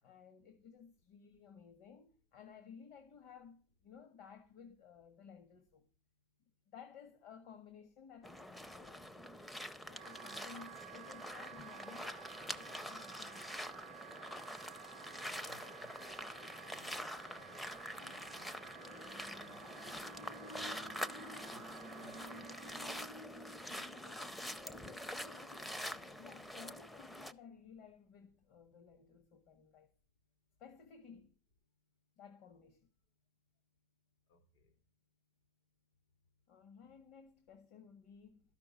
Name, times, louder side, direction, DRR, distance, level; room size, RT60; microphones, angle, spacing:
voice 1, 0.0-5.9 6.7-9.1 9.8-13.7 23.7-29.9 30.6-31.3 32.2-32.8 36.5-38.4, left 7 dB, 50° left, 1.6 m, -57 dB
sound 1, 8.2-27.3, equal, 5° left, 0.5 m, -46 dB
Wind instrument woodwind instrument, 9.9-23.1, right 17 dB, 75° right, 0.5 m, -55 dB
voice 2, 15.1-18.9 19.2-20.0 20.4-20.9 21.5-22.4 34.3-34.7, left 4 dB, 70° left, 4.2 m, -62 dB
Motor vehicle (road) / Siren, 18.8-25.6, left 3 dB, 30° left, 0.8 m, -56 dB
13.0 x 6.0 x 8.4 m
supercardioid pair, 160°, 0 cm